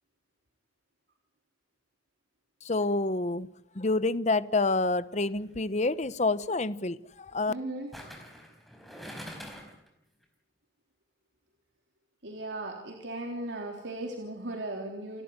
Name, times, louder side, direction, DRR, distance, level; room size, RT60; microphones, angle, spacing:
voice 1, 2.6-3.5 3.7-7.5, left 3 dB, 40° left, 15 dB, 0.9 m, -28 dB
sound 1, 5.3-5.6 7.9-9.9 10.2-10.3, equal, ahead, 4.3 m, -44 dB
voice 2, 7.5-7.9 12.2-15.2, right 1 dB, 75° right, 1 dB, 3.5 m, -37 dB
29.5 x 12.5 x 9.7 m, 0.79 s
head